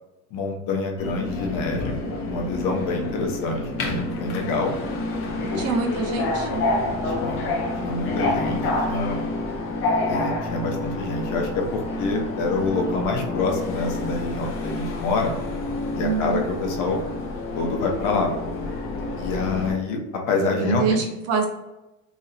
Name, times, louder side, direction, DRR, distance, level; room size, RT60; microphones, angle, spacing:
voice 1, 0.3-1.9 2.2-4.7 5.5-5.6 7.1-7.4 7.8-9.2 10.1-15.3 15.9-17.0 17.5-18.3 19.2-20.0 20.3-21.0, left 3 dB, 55° left, 1 dB, 0.9 m, -26 dB
Subway metro underground, 1.0-19.7, left 2 dB, 35° left, 0.7 m, -28 dB
voice 2, 5.6-6.6 16.0-16.4 20.4-21.5, right 5 dB, 40° right, 3 dB, 0.7 m, -25 dB
3.1 x 2.7 x 4.0 m, 0.97 s
cardioid pair, 145°, 37 cm